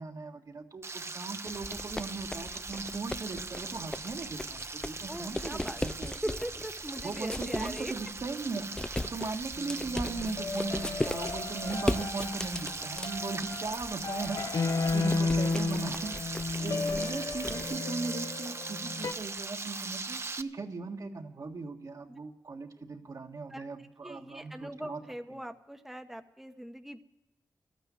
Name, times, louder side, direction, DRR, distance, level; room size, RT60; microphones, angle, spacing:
voice 1, 0.0-6.1 7.0-8.7 9.0-25.0, right 3 dB, 60° right, 3 dB, 1.6 m, -38 dB
Frying (food), 0.8-20.4, right 3 dB, 45° right, 0.8 m, -40 dB
sound 1, 1.5-17.8, left 1 dB, 10° left, 0.4 m, -39 dB
voice 2, 5.1-5.8 6.2-7.9 9.2-9.3 16.6-17.1 22.1-22.2 23.5-23.7 24.0-27.0, equal, 5° right, 6 dB, 0.9 m, -41 dB
sound 2, 9.6-19.1, left 3 dB, 65° left, 0.9 m, -34 dB
13.0 x 9.2 x 9.4 m, 1.0 s
cardioid pair, 45°, 7 cm